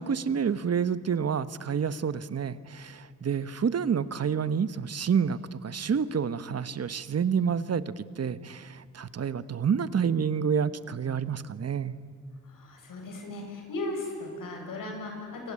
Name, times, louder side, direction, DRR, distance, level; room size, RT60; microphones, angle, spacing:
voice 1, 0.0-11.9, right 7 dB, 50° right, 14 dB, 1.2 m, -28 dB
voice 2, 12.5-15.5, left 2 dB, 80° left, 2 dB, 7.4 m, -37 dB
28.0 x 24.0 x 8.8 m, 2.4 s
cardioid pair, 80°, 32 cm